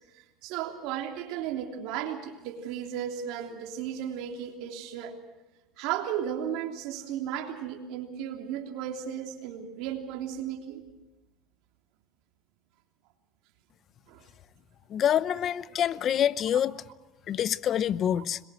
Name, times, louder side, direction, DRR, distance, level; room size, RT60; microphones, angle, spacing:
voice 1, 0.1-5.2 5.8-10.8 14.1-14.2, right 9 dB, 70° right, 3.2 m, -35 dB
voice 2, 14.9-16.7 17.3-18.4, left 10 dB, 45° left, 0.8 m, -26 dB
26.0 x 22.0 x 6.4 m
supercardioid pair, 105°, 0 cm